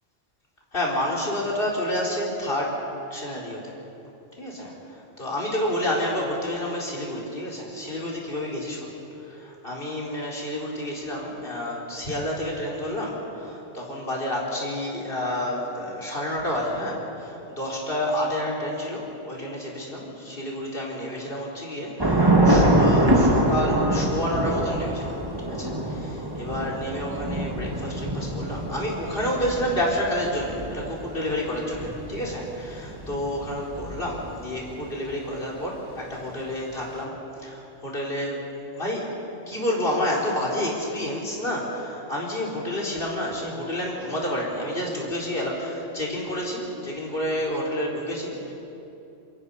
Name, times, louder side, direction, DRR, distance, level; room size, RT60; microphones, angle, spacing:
voice 1, 0.7-2.9 3.1-3.7 4.4-4.7 5.2-8.9 9.3-25.2 25.4-37.1 37.4-38.5 38.7-39.1 39.5-48.5, left 1 dB, 55° left, -3 dB, 4.4 m, -29 dB
Thunder / Rain, 22.0-34.5, right 1 dB, 20° right, 1.8 m, -25 dB
27.0 x 23.5 x 5.6 m, 2.9 s
omnidirectional pair, 1.1 m